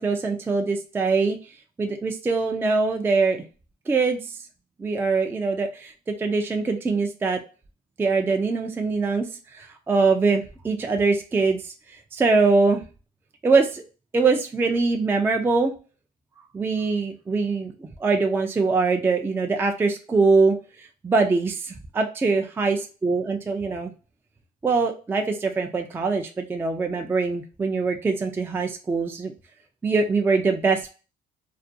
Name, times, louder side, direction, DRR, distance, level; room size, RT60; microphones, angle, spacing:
voice 1, 0.0-1.4 1.8-3.4 3.9-4.2 4.8-5.9 6.2-7.4 8.0-9.3 9.5-12.8 13.4-13.8 14.1-15.7 16.5-22.8 23.0-23.9 24.6-29.3 29.8-30.9, right 4 dB, 15° right, 4 dB, 0.3 m, -23 dB
2.4 x 2.1 x 2.5 m, 0.34 s
cardioid pair, 110°, 17 cm